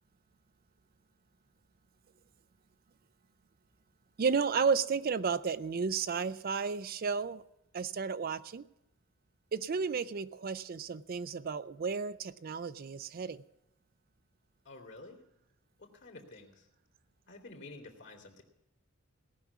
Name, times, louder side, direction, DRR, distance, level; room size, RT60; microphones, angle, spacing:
voice 1, 4.2-7.4 7.7-8.6 9.5-13.4, right 5 dB, 45° right, 14 dB, 0.4 m, -32 dB
voice 2, 14.6-15.2 15.8-16.7 17.3-18.4, left 2 dB, 60° left, 2 dB, 2.7 m, -50 dB
18.0 x 6.1 x 8.2 m, 0.86 s
head